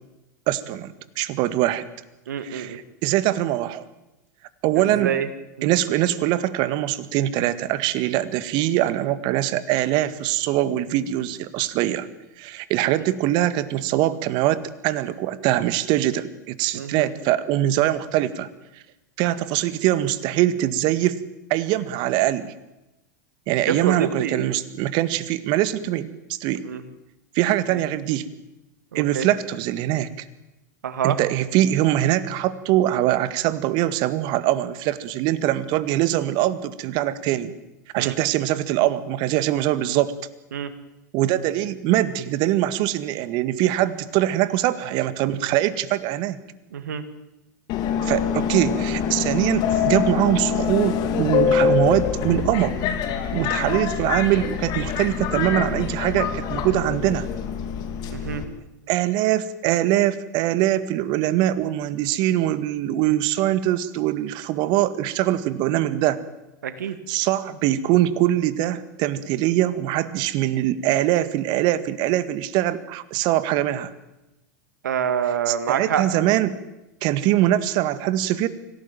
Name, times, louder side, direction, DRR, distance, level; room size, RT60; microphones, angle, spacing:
voice 1, 0.5-1.8 2.4-3.8 4.6-5.1 5.6-12.1 12.4-18.5 19.2-21.2 21.5-22.5 23.5-26.6 27.4-28.3 28.9-30.3 31.0-37.5 37.9-40.1 41.1-46.4 48.0-52.8 53.3-57.3 58.9-66.2 67.1-73.9 75.5-76.6 77.0-78.5, right 13 dB, 50° right, 14 dB, 1.9 m, -23 dB
voice 2, 2.3-2.8 4.8-5.3 5.6-5.7 16.7-17.1 23.6-24.5 26.7-26.8 27.7-27.8 28.9-29.3 30.8-31.2 38.0-38.1 40.5-40.7 46.7-47.0 53.6-53.8 58.1-58.4 66.6-67.0 74.8-76.0, right 8 dB, 75° right, 11 dB, 2.3 m, -26 dB
Subway metro underground, 47.7-58.4, left 8 dB, 45° left, 3.4 m, -25 dB
25.5 x 17.5 x 9.2 m, 0.96 s
hypercardioid pair, 90°, 10 cm